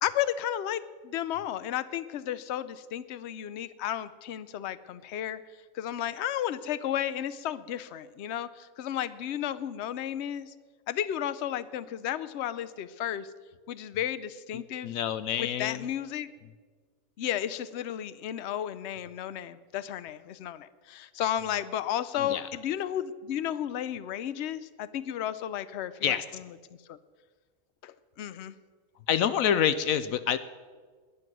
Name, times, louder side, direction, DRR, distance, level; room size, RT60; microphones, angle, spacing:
voice 1, 0.0-5.4 5.7-10.5 10.9-13.3 13.7-14.9 15.4-16.3 17.2-26.4 26.9-27.0 27.8-28.5, left 11 dB, 60° left, 15 dB, 0.9 m, -33 dB
voice 2, 14.5-15.9 22.2-22.5 26.0-26.2 29.1-30.4, left 9 dB, 75° left, 13 dB, 1.0 m, -27 dB
20.0 x 9.8 x 6.1 m, 1.5 s
omnidirectional pair, 1.5 m